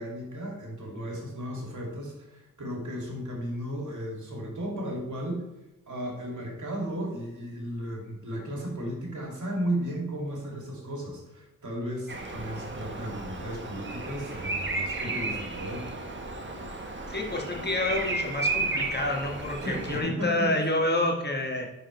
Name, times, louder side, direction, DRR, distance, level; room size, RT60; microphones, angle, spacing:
voice 1, 0.0-5.5 5.9-16.0 19.6-20.5, right 1 dB, 60° right, -1 dB, 2.6 m, -34 dB
Bird vocalization bird call bird song, 12.1-20.0, right 3 dB, 35° right, 1.2 m, -33 dB
voice 2, 17.1-21.7, left 2 dB, 30° left, 1 dB, 1.4 m, -28 dB
10.0 x 4.9 x 3.2 m, 0.96 s
cardioid pair, 45°, 34 cm